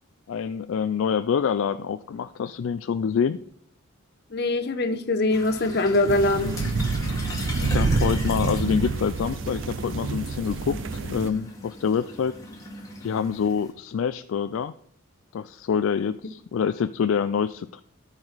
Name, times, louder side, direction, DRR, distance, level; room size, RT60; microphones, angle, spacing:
voice 1, 0.3-3.4 7.6-10.8 11.1-12.3 13.0-14.7 15.3-17.8, left 7 dB, 65° left, 11 dB, 0.3 m, -26 dB
voice 2, 4.3-6.5, left 2 dB, 50° left, 8 dB, 0.8 m, -23 dB
sound 1, 5.3-13.7, equal, 15° left, 1.8 m, -38 dB
sound 2, 6.1-11.3, right 4 dB, 55° right, 0.5 m, -27 dB
13.0 x 4.8 x 4.0 m, 0.64 s
head